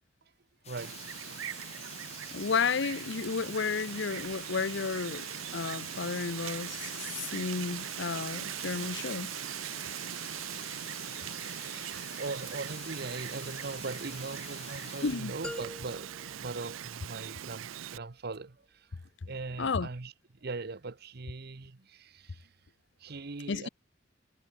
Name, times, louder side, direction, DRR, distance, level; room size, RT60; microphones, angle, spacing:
sound 1, 0.6-15.1, left 8 dB, 35° left, 1.8 m, -49 dB
voice 1, 0.6-1.4 11.5-22.6 23.0-23.7, right 3 dB, 55° right, 0.9 m, -41 dB
Wind, 0.8-18.0, right 11 dB, 90° right, 0.5 m, -40 dB
voice 2, 2.3-5.3 5.5-9.3 15.0-15.3 19.6-19.9 23.5-23.7, left 5 dB, 65° left, 0.7 m, -32 dB
sound 2, 15.4-17.5, left 1 dB, 5° left, 0.4 m, -45 dB
head